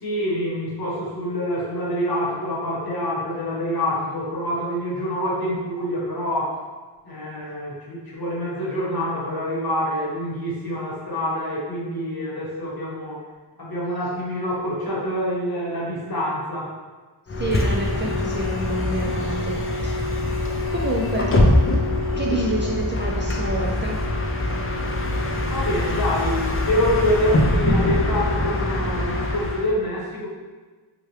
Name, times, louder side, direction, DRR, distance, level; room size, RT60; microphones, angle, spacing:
voice 1, 0.0-6.6 7.0-13.2 13.6-16.7 25.5-30.3, equal, 50° left, -4 dB, 1.1 m, -26 dB
Bus, 17.3-29.7, left 1 dB, 30° left, 0.5 m, -23 dB
voice 2, 17.4-19.6 19.8-20.0 20.7-21.3 22.2-24.0, right 1 dB, 25° right, -3 dB, 0.4 m, -28 dB
3.0 x 2.3 x 3.1 m, 1.3 s
cardioid pair, 45°, 47 cm